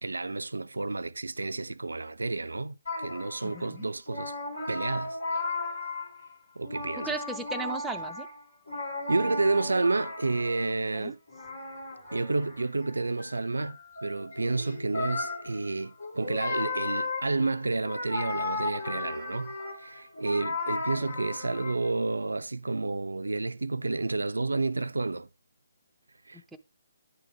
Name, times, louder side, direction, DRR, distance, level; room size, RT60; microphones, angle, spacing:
voice 1, 0.0-4.3 4.7-5.2 6.6-7.1 9.1-11.2 12.1-25.3 26.3-26.4, right 3 dB, 75° right, 0.4 m, -30 dB
sound 1, 2.9-3.7 4.1-6.3 6.6-10.9 11.3-21.9, left 3 dB, 65° left, 2.8 m, -35 dB
voice 2, 3.4-3.9 7.0-8.3 10.9-11.1 26.5-26.6, right 2 dB, 5° right, 0.5 m, -36 dB
9.4 x 3.9 x 4.5 m
figure-of-eight pair, 140°, 0 cm